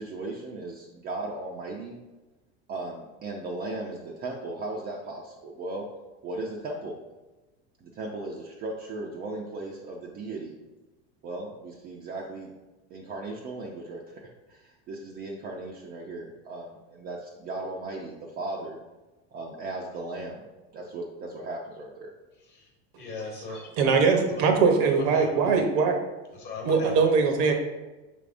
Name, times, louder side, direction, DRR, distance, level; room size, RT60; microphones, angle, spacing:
voice 1, 0.0-2.0 2.7-5.9 6.2-7.0 7.8-10.6 11.2-12.5 12.9-14.2 14.5-18.8 19.3-20.5 20.7-22.1, right 2 dB, 30° right, -1 dB, 0.4 m, -37 dB
voice 2, 23.0-23.7 24.3-24.5 24.8-25.5 26.3-26.9, left 4 dB, 35° left, 0 dB, 1.1 m, -39 dB
voice 3, 23.8-26.0 26.6-27.5, right 5 dB, 55° right, 4 dB, 0.8 m, -21 dB
5.8 x 3.5 x 2.5 m, 1.1 s
supercardioid pair, 140°, 32 cm